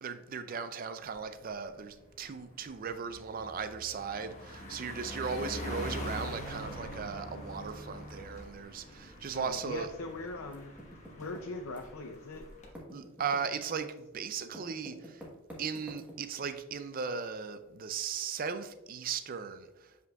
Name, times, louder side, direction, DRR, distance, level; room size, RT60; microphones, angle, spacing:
voice 1, 0.0-9.9 12.9-15.2 15.6-19.9, right 6 dB, 40° right, 0.4 m, -37 dB
Car passing by, 1.1-1.3 1.7-12.7, equal, 35° left, 1.2 m, -44 dB
voice 2, 9.3-10.7 11.2-12.5 13.7-13.9, left 3 dB, 80° left, 0.5 m, -41 dB
Typing, 10.5-12.2 12.4-16.5, equal, 5° right, 1.2 m, -49 dB
7.7 x 5.2 x 2.3 m
head